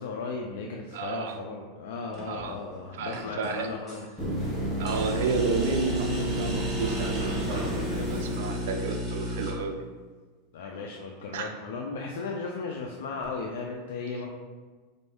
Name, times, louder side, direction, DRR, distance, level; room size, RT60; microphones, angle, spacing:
voice 1, 0.0-4.1 4.5-4.6 10.5-14.3, left 4 dB, 70° left, 0 dB, 0.4 m, -36 dB
voice 2, 0.9-1.3 2.2-2.6 2.9-3.7 4.8-9.9 11.3-11.5, right 5 dB, 70° right, 5 dB, 0.4 m, -32 dB
sound 1, 2.1-2.6 3.0-4.0 4.8-9.5, left 1 dB, 15° right, 1.1 m, -33 dB
sound 2, 4.2-9.2 13.2-13.3, right 1 dB, ahead, 0.9 m, -32 dB
4.3 x 2.6 x 3.4 m, 1.4 s
supercardioid pair, 165°, 0 cm